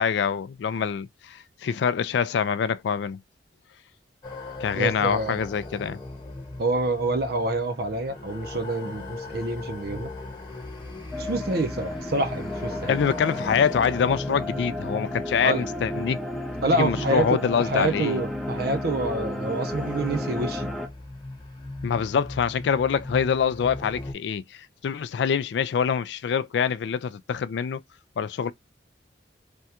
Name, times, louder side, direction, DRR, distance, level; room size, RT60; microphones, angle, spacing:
voice 1, 0.0-3.2 4.6-6.0 12.9-16.2 16.7-18.2 21.8-27.8 28.2-28.5, left 7 dB, 65° left, 0.3 m, -25 dB
sound 1, 4.2-24.1, left 2 dB, 25° left, 1.1 m, -38 dB
voice 2, 4.7-5.4 6.6-10.1 11.2-13.0 15.4-15.7 16.6-20.7, right 2 dB, 55° right, 0.5 m, -27 dB
sound 2, 11.1-20.9, left 1 dB, ahead, 0.4 m, -33 dB
3.4 x 2.2 x 2.8 m
head